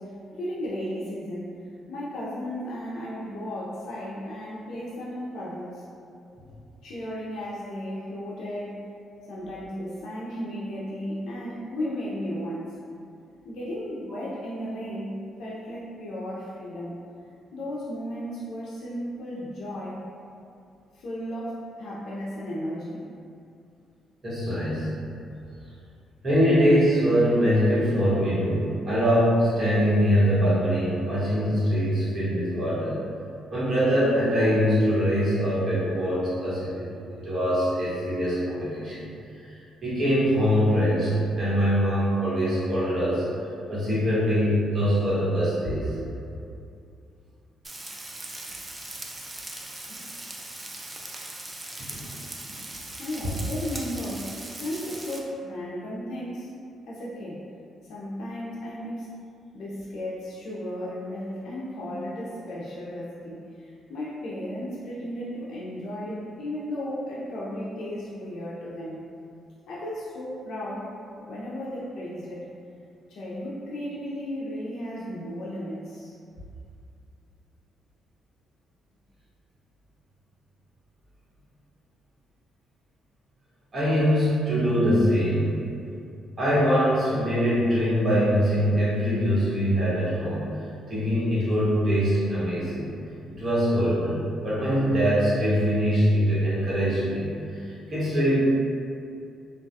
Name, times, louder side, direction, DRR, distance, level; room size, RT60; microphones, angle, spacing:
voice 1, 0.0-1.6 1.9-5.8 6.8-8.8 9.3-12.7 13.4-17.0 17.5-20.0 20.9-23.0 53.0-56.5 56.9-57.4 57.9-59.1 59.5-69.0 69.7-72.5 73.1-76.1, equal, 70° left, -7 dB, 0.4 m, -34 dB
voice 2, 24.2-24.9 26.2-33.0 33.5-36.9 37.2-39.0 39.8-41.1 41.4-43.2 43.7-45.9 49.9-50.0 51.9-52.1 52.5-52.6 83.7-85.5 86.4-90.6 90.9-92.9 93.3-97.6 97.9-98.4, equal, 40° right, -10 dB, 1.1 m, -23 dB
Frying (food), 47.6-55.2, right 2 dB, 20° right, 0.3 m, -39 dB
2.3 x 2.2 x 2.6 m, 2.5 s
cardioid pair, 90°, 0 cm